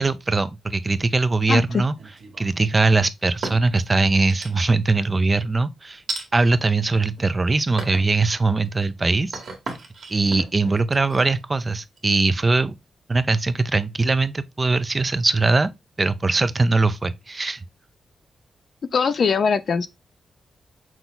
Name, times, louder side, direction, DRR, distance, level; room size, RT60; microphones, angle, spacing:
voice 1, 0.0-1.9 2.4-6.0 6.3-9.4 10.1-12.7 13.1-15.7 16.0-17.6, right 3 dB, 25° right, 0.4 m, -21 dB
sound 1, 1.9-2.7 3.2-3.8 4.3-4.9 6.1-6.3 6.9-7.4 7.8-8.1 8.6-12.3, right 3 dB, 60° right, 1.6 m, -35 dB
voice 2, 18.9-19.9, left 5 dB, 55° left, 0.5 m, -20 dB
6.0 x 2.3 x 3.8 m
wide cardioid pair, 120°, 0 cm